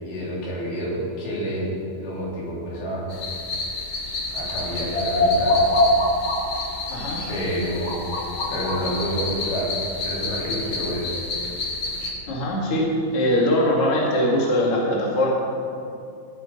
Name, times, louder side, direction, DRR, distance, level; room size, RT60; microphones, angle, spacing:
voice 1, 0.0-1.7 2.0-3.0 4.3-5.7 7.3-7.9 8.5-9.7 10.0-11.1, equal, 85° left, -6 dB, 5.6 m, -28 dB
sound 1, 3.1-12.1, left 1 dB, 60° left, 1.6 m, -25 dB
voice 2, 6.9-7.3 12.3-15.3, left 1 dB, 40° left, -3 dB, 2.2 m, -22 dB
17.5 x 8.9 x 5.4 m, 2.6 s
omnidirectional pair, 5.4 m